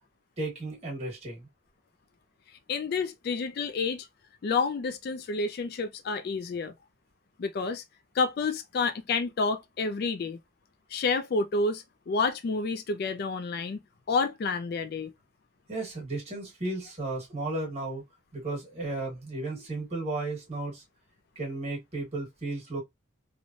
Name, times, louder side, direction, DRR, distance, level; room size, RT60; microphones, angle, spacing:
voice 1, 0.4-1.5 15.7-18.0 18.3-20.8 21.3-22.8, right 2 dB, 30° right, 1.4 m, -34 dB
voice 2, 2.7-4.0 4.4-6.7 7.4-7.8 8.1-10.4 10.9-13.8 14.1-15.1, left 4 dB, 50° left, 0.3 m, -29 dB
3.1 x 2.1 x 2.5 m
head